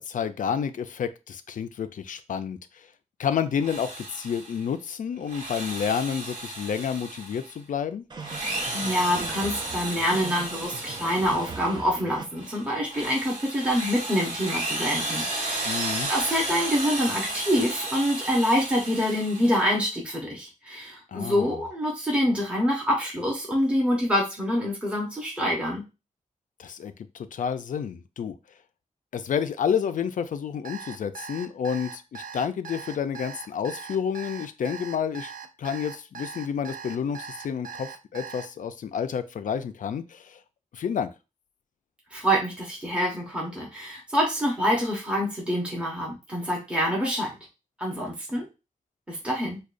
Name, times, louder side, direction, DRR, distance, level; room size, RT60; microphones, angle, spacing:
voice 1, 0.0-2.9 3.2-8.0 15.7-16.1 21.1-21.6 26.6-28.4 29.1-35.3 35.6-40.4 40.7-41.1, left 7 dB, 75° left, 10 dB, 0.4 m, -30 dB
Drill, 3.5-4.7 5.2-7.6 8.1-11.8 12.3-19.8, right 2 dB, 65° right, 1.3 m, -33 dB
sound 1, 8.1-12.2, right 4 dB, 35° right, 0.5 m, -39 dB
voice 2, 8.7-25.8 42.1-47.3 47.8-48.5 49.1-49.6, equal, 10° right, -3 dB, 1.0 m, -26 dB
Alarm, 30.6-38.5, right 6 dB, 85° right, 0.4 m, -40 dB
4.8 x 2.3 x 2.5 m, 0.27 s
wide cardioid pair, 160°, 14 cm